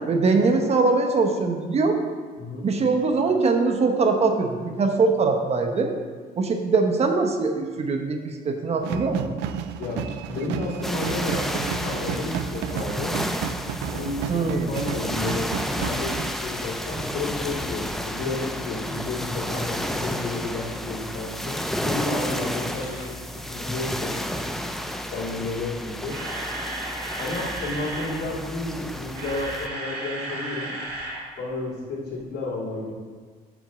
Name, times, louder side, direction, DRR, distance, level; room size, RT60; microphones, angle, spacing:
voice 1, 0.1-2.0 2.6-5.9 6.4-9.3 14.3-14.7, right 4 dB, 40° right, 3 dB, 0.9 m, -22 dB
voice 2, 2.4-2.7 9.8-13.2 13.9-24.2 25.0-26.2 27.2-30.7 31.4-32.9, left 2 dB, 70° left, -4 dB, 2.6 m, -32 dB
sound 1, 8.8-16.4, right 8 dB, 85° right, 0.5 m, -32 dB
sound 2, 10.8-29.7, equal, ahead, 0.5 m, -31 dB
Camera, 26.1-28.2 28.9-31.2 31.5-31.6 32.1-32.2, right 2 dB, 70° right, 2.1 m, -34 dB
6.1 x 5.1 x 6.8 m, 1.5 s
cardioid pair, 110°, 17 cm